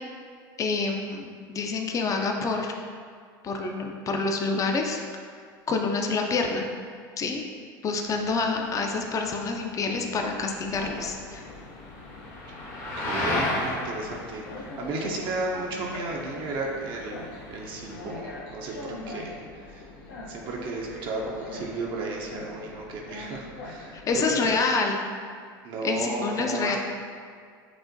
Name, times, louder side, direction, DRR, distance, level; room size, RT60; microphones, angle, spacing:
voice 1, 0.6-2.7 3.4-5.0 5.7-6.7 7.2-7.4 7.8-11.4 23.9-25.0 25.8-26.8, left 4 dB, 30° left, 2 dB, 0.5 m, -27 dB
sound 1, 8.0-18.0, left 1 dB, 60° left, 1.3 m, -35 dB
Train, 10.2-24.6, left 2 dB, 80° left, 0.6 m, -42 dB
voice 2, 13.0-19.3 19.7-19.8 20.3-24.6 25.6-26.8, right 3 dB, 50° right, -1 dB, 0.5 m, -34 dB
5.9 x 2.1 x 2.6 m, 2.1 s
hypercardioid pair, 90°, 11 cm